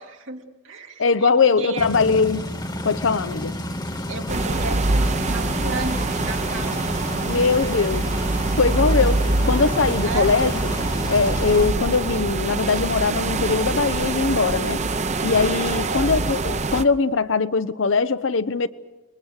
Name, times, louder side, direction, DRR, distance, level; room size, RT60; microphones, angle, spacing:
voice 1, 0.0-1.9 4.1-6.9 7.2-7.6 10.0-10.4 15.7-16.1, right 3 dB, 85° right, 2.6 m, -33 dB
voice 2, 1.0-2.4 2.8-3.5 7.3-8.0 8.6-10.5 11.1-14.8 15.2-18.7, left 4 dB, 85° left, 0.7 m, -21 dB
sound 1, 1.8-11.7, left 1 dB, 20° left, 1.2 m, -30 dB
sound 2, 4.3-16.8, right 2 dB, 35° right, 0.8 m, -24 dB
27.0 x 22.5 x 6.5 m
head